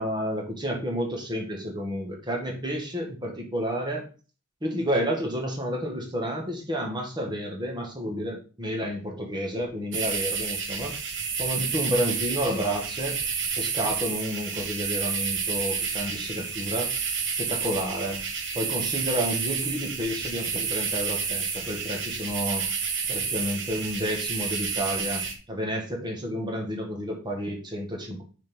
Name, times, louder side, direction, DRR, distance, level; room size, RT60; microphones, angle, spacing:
voice 1, 0.0-4.0 4.6-11.1 11.4-13.2 13.6-16.9 17.4-18.2 18.5-22.7 23.1-28.2, equal, 20° right, 1 dB, 1.8 m, -30 dB
sound 1, 9.9-25.3, right 6 dB, 55° right, 1.3 m, -30 dB
6.5 x 4.2 x 5.5 m, 0.36 s
head